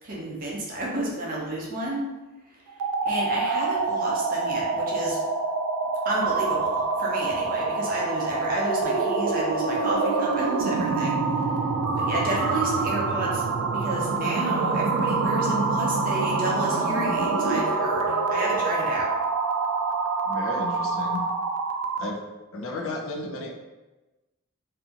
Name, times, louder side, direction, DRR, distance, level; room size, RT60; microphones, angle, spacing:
voice 1, 0.0-2.0 3.1-5.2 6.0-11.5 12.0-13.4 13.7-19.1, right 1 dB, 40° right, -3 dB, 0.6 m, -31 dB
sound 1, 2.7-22.1, right 4 dB, 85° right, 0.3 m, -26 dB
voice 2, 20.2-21.2 22.0-22.2 22.5-23.5, left 2 dB, 65° left, 0 dB, 0.5 m, -33 dB
2.7 x 2.5 x 2.4 m, 1.1 s
head